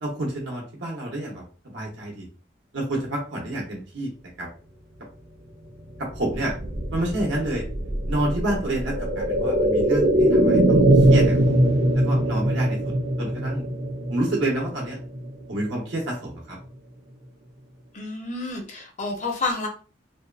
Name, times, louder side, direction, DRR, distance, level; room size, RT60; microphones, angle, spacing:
voice 1, 0.0-2.3 2.7-4.1 4.4-4.5 6.0-6.5 6.9-7.7 8.1-11.6 11.9-12.8 13.2-13.6 14.1-15.0 15.5-16.6, right 1 dB, 85° right, -2 dB, 0.7 m, -29 dB
sound 1, 6.0-15.8 16.1-16.2, right 1 dB, 35° right, 0.4 m, -22 dB
voice 2, 17.9-19.7, left 3 dB, 40° left, 2 dB, 0.6 m, -29 dB
2.6 x 2.2 x 2.3 m, 0.38 s
head